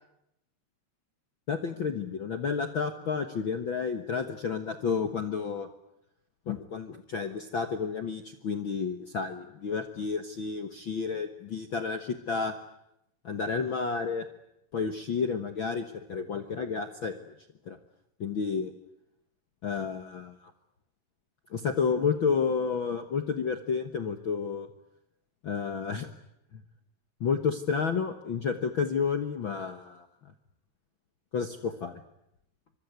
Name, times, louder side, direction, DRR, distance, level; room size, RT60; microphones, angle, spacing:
voice 1, 1.5-5.7 6.5-12.5 13.2-14.3 14.7-17.3 17.7-17.8 18.2-18.7 19.6-20.5 21.5-24.7 25.4-26.1 27.2-30.3 31.3-32.0, left 5 dB, 75° left, 8 dB, 1.1 m, -31 dB
25.5 x 23.0 x 9.5 m, 0.81 s
omnidirectional pair, 4.3 m